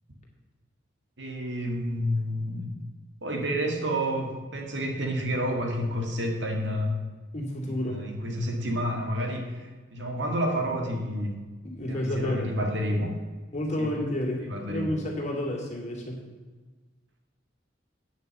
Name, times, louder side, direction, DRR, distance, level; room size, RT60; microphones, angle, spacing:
voice 1, 1.2-2.7 3.2-7.1 7.6-11.3 11.9-13.2 13.8-13.9 14.4-14.9, equal, 70° right, 2 dB, 1.9 m, -29 dB
voice 2, 7.3-8.1 11.6-12.5 13.5-16.2, left 1 dB, 40° left, -1 dB, 2.6 m, -30 dB
9.0 x 6.7 x 8.0 m, 1.3 s
head